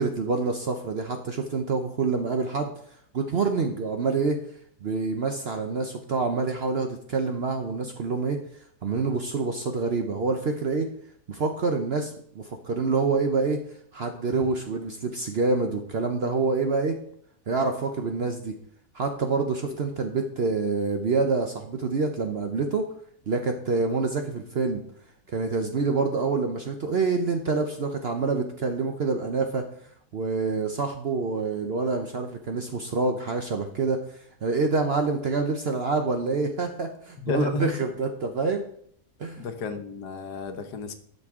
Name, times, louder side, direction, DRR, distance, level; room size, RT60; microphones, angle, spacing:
voice 1, 0.0-2.7 3.1-4.4 4.8-8.4 8.8-10.9 11.3-13.6 13.9-17.0 17.5-18.5 18.9-22.9 23.3-24.8 25.3-29.7 30.1-38.6 39.2-39.5, right 4 dB, 55° right, 5 dB, 0.7 m, -27 dB
voice 2, 37.2-37.8 39.4-40.9, left 5 dB, 80° left, 7 dB, 1.5 m, -32 dB
12.0 x 5.4 x 3.6 m, 0.64 s
omnidirectional pair, 1.7 m